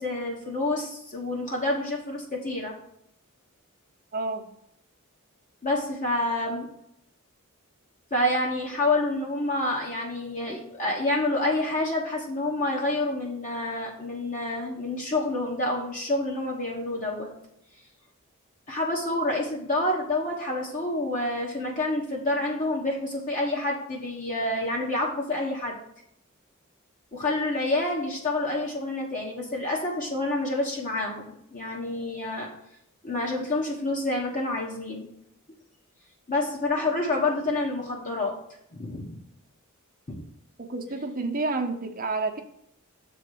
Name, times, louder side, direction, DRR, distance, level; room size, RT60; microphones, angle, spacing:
voice 1, 0.0-2.7 5.6-6.7 8.1-17.3 18.7-25.7 27.1-32.5 33.0-35.1 36.3-38.3 38.7-39.2 40.1-40.2, left 2 dB, 35° left, -2 dB, 1.2 m, -28 dB
voice 2, 4.1-4.4 40.6-42.4, right 3 dB, 40° right, 4 dB, 0.9 m, -29 dB
7.0 x 3.9 x 6.4 m, 0.74 s
head